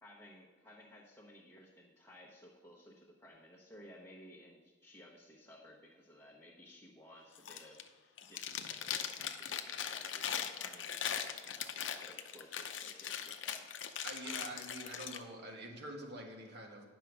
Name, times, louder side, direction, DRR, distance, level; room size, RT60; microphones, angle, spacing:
voice 1, 0.0-14.6, left 1 dB, 15° left, -5 dB, 1.0 m, -57 dB
Chewing mastication, 7.4-7.9 8.2-15.2, left 9 dB, 75° left, 0.6 m, -40 dB
voice 2, 14.0-16.8, right 1 dB, 60° right, 1 dB, 1.5 m, -46 dB
9.7 x 6.1 x 4.7 m, 1.4 s
head